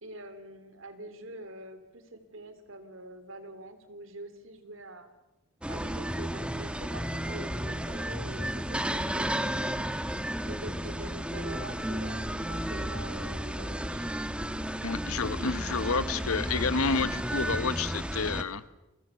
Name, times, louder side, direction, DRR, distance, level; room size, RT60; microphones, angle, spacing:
voice 1, 0.0-5.1 5.7-10.0 10.4-14.1, right 1 dB, 65° right, 10 dB, 3.0 m, -45 dB
sound 1, 5.6-18.4, equal, 5° right, 1.1 m, -33 dB
voice 2, 14.8-18.6, left 4 dB, 90° left, 14 dB, 1.2 m, -30 dB
30.0 x 23.0 x 7.0 m, 1.0 s
head